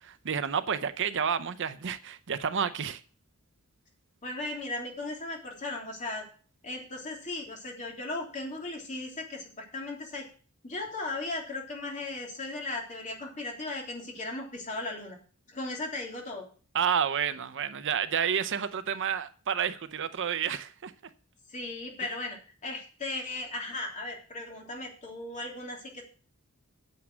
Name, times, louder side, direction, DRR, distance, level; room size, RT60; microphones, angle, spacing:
voice 1, 0.0-3.0 16.7-20.9, right 7 dB, 55° right, 0.6 m, -30 dB
voice 2, 4.2-6.3 6.6-10.3 10.6-15.2 15.5-16.5 21.5-26.1, left 2 dB, 35° left, 3.1 m, -37 dB
9.3 x 7.4 x 6.1 m
head